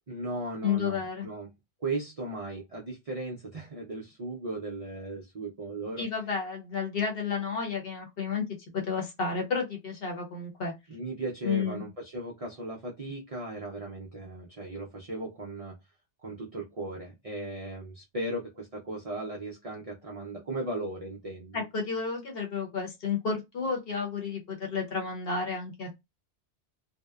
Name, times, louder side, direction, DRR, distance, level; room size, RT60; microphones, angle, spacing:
voice 1, 0.1-1.5 1.8-6.0 10.9-15.8 16.2-21.7, right 2 dB, 50° right, 0.4 m, -37 dB
voice 2, 0.6-1.3 6.0-8.4 8.7-10.7 11.4-11.9 21.5-25.9, left 5 dB, 60° left, 1.0 m, -31 dB
2.7 x 2.0 x 2.2 m
omnidirectional pair, 1.2 m